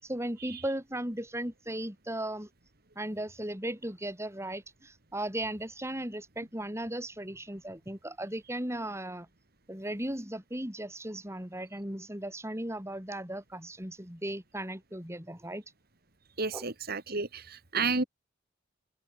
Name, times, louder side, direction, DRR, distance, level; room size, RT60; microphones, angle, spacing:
voice 1, 0.0-2.5 3.0-9.3 9.7-15.6 16.5-16.7, right 1 dB, 15° right, 7.6 m, -36 dB
voice 2, 16.4-18.0, right 4 dB, 50° right, 2.5 m, -31 dB
open air
head